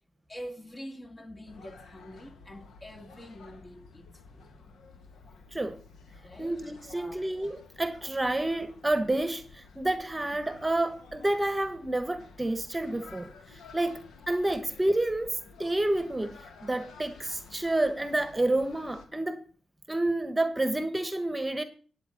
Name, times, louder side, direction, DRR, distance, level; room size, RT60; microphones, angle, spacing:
voice 1, 0.3-4.4 6.2-7.3 13.9-14.1, equal, 30° left, 2.5 m, -45 dB
sound 1, 1.5-19.1, left 4 dB, 80° left, 1.7 m, -52 dB
voice 2, 6.4-19.4 19.9-21.6, right 1 dB, 20° right, 1.2 m, -29 dB
10.5 x 8.5 x 6.0 m
supercardioid pair, 50°, 0 cm